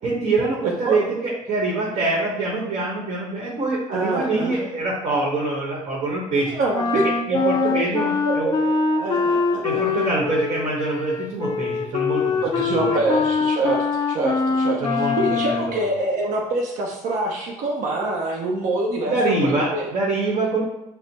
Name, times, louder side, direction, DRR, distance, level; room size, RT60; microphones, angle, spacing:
voice 1, 0.0-6.6 7.3-8.5 9.6-12.4 12.7-13.2 14.8-15.1 15.7-15.8 19.0-20.6, right 2 dB, 45° right, -3 dB, 1.1 m, -24 dB
voice 2, 0.6-1.0 3.9-4.6 6.4-7.9 8.2-10.1 12.4-19.9, right 2 dB, 65° right, -1 dB, 0.6 m, -25 dB
Wind instrument woodwind instrument, 6.7-15.7, left 5 dB, 30° left, 0.4 m, -23 dB
4.2 x 2.0 x 4.0 m, 0.95 s
cardioid pair, 100°, 14 cm